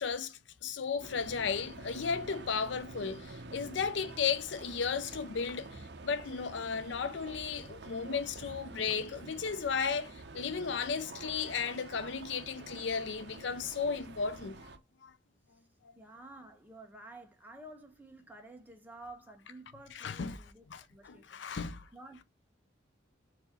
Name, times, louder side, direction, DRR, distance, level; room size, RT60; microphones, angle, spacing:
voice 1, 0.0-14.6 15.0-15.1 15.8-15.9 19.9-20.4 20.7-21.9, left 6 dB, 70° left, 0.5 m, -35 dB
sound 1, 1.0-14.8, right 2 dB, 60° right, 0.7 m, -48 dB
voice 2, 16.0-21.4 21.9-22.2, right 2 dB, 10° right, 0.8 m, -51 dB
4.6 x 2.7 x 4.0 m
head